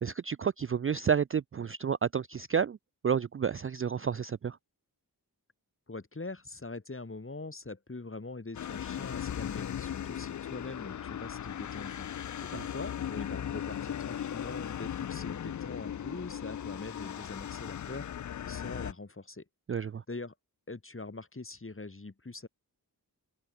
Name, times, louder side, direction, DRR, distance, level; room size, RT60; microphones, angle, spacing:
voice 1, 0.0-2.8 3.0-4.6 19.7-20.0, right 7 dB, 35° right, 0.4 m, -30 dB
voice 2, 5.9-19.4 20.1-20.3 20.7-22.5, left 3 dB, 35° left, 7.8 m, -43 dB
sound 1, 8.5-18.9, left 9 dB, 50° left, 0.4 m, -37 dB
open air
wide cardioid pair, 110°, 39 cm